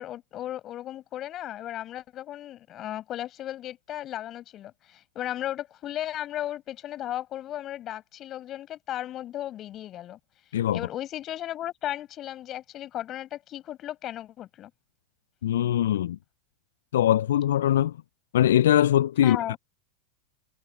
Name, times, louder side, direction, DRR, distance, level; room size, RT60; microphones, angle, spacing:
voice 1, 0.0-10.2 10.7-14.7 19.2-19.6, left 12 dB, 40° left, 6.9 m, -35 dB
voice 2, 15.4-16.2 16.9-17.9 18.3-19.6, left 11 dB, 70° left, 0.3 m, -22 dB
figure-of-eight pair, 85°, 0 cm